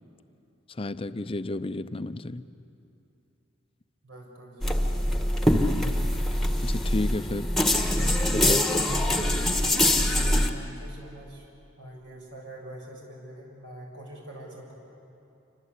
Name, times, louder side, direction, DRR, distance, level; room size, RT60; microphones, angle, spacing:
voice 1, 0.7-2.4 5.5-6.0 6.6-7.5 8.3-8.8 9.2-9.3, left 2 dB, 30° left, 12 dB, 0.6 m, -32 dB
voice 2, 4.0-5.1 7.8-11.5 11.8-14.7, equal, 70° right, -1 dB, 7.3 m, -45 dB
sound 1, 4.6-10.5, left 1 dB, ahead, 1.5 m, -24 dB
28.0 x 25.0 x 8.3 m, 2.7 s
head